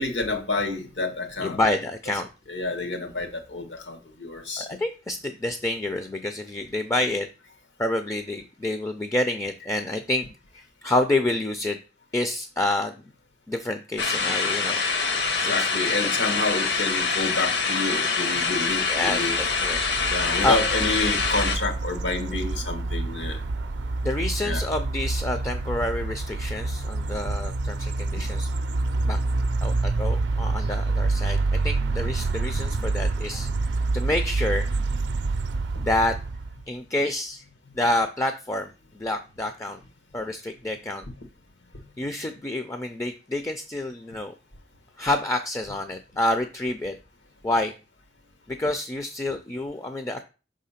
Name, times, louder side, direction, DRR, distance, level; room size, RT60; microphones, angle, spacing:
voice 1, 0.0-1.6 2.5-4.7 15.4-19.4 20.1-23.4 24.4-24.6, left 3 dB, 85° left, 1.4 m, -29 dB
voice 2, 1.4-2.3 4.6-7.3 7.8-10.3 10.6-11.8 12.1-12.9 13.5-14.8 15.4-15.5 18.9-19.8 20.2-20.6 24.0-28.5 29.0-29.2 29.6-31.4 31.6-34.7 35.8-36.2 36.7-37.4 37.7-39.8 40.1-41.0 42.0-44.3 45.0-47.0 47.4-47.7 48.5-50.2, left 1 dB, 15° left, 0.4 m, -28 dB
sound 1, 14.0-21.6, left 4 dB, 65° left, 1.0 m, -25 dB
sound 2, 19.0-36.6, right 3 dB, 75° right, 0.5 m, -27 dB
5.6 x 3.7 x 5.7 m
head